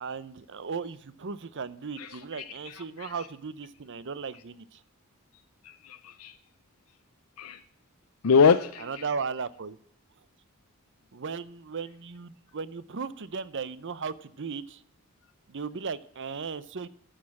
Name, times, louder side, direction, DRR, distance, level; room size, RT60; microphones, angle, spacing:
voice 1, 0.0-4.8 8.8-9.8 11.1-14.8 15.5-16.9, right 5 dB, 60° right, 16 dB, 0.7 m, -36 dB
voice 2, 2.0-3.1 5.6-6.4 7.4-7.6 8.2-9.0, left 5 dB, 85° left, 9 dB, 0.5 m, -25 dB
12.5 x 6.5 x 7.1 m, 0.65 s
head